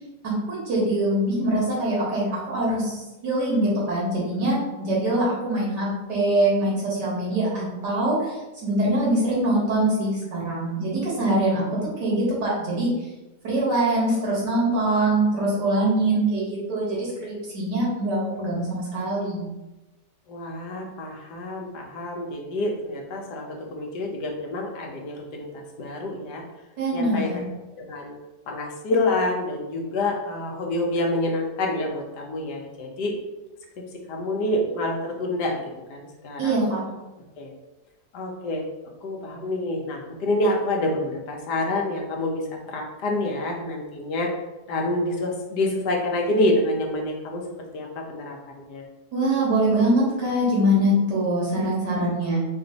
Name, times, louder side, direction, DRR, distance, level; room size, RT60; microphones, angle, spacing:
voice 1, 0.2-11.7 12.0-12.9 13.4-19.5 26.8-27.4 36.4-36.8 49.1-52.4, right 1 dB, 85° right, -5 dB, 2.1 m, -23 dB
voice 2, 20.3-26.4 26.9-27.3 27.8-28.1 28.5-33.2 34.1-35.6 35.9-36.5 37.4-37.5 38.1-38.6 39.0-42.4 42.7-44.3 44.7-47.4 47.7-48.4 48.7-48.8, left 1 dB, 75° left, 1 dB, 1.3 m, -27 dB
4.3 x 2.5 x 3.9 m, 1.1 s
omnidirectional pair, 1.8 m